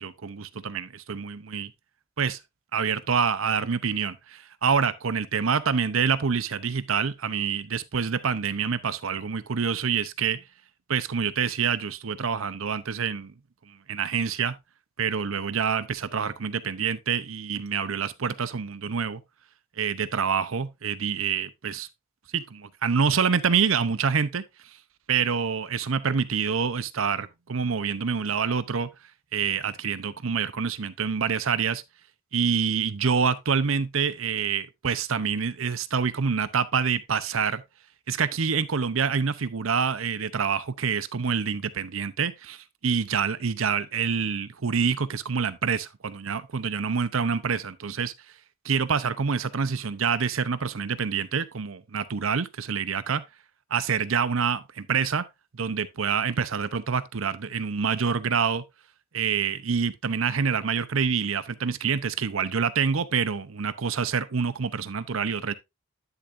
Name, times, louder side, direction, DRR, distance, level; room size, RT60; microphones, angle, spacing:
voice 1, 0.0-1.7 2.2-2.4 2.7-10.4 10.9-13.3 13.7-14.6 15.0-19.2 19.8-21.9 22.3-24.4 25.1-28.9 29.3-31.8 32.3-37.6 38.1-48.1 48.6-53.2 53.7-55.2 55.5-58.6 59.1-65.5, right 6 dB, 85° right, 0.7 m, -26 dB
11.0 x 6.8 x 2.6 m
head